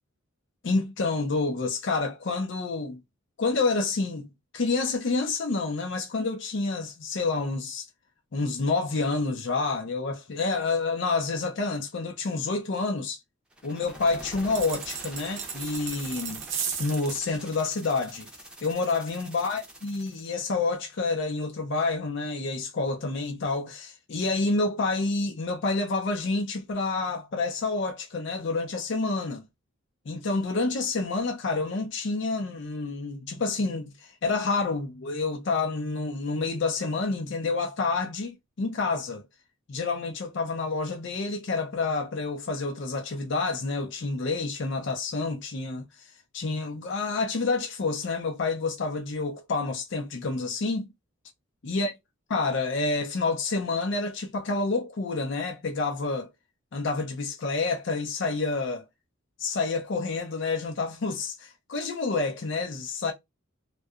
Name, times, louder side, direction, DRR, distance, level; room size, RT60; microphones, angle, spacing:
voice 1, 0.6-3.0 3.4-4.3 4.5-7.8 8.3-13.2 13.6-16.4 16.8-18.3 18.6-29.4 30.1-39.2 39.7-45.8 46.3-50.9 51.6-51.9 52.3-56.3 56.7-58.8 59.4-63.1, left 3 dB, 60° left, 0.5 m, -28 dB
sound 1, 13.5-20.3, equal, 5° right, 0.6 m, -46 dB
sound 2, 14.5-17.2, right 7 dB, 60° right, 0.6 m, -35 dB
2.7 x 2.2 x 2.4 m
head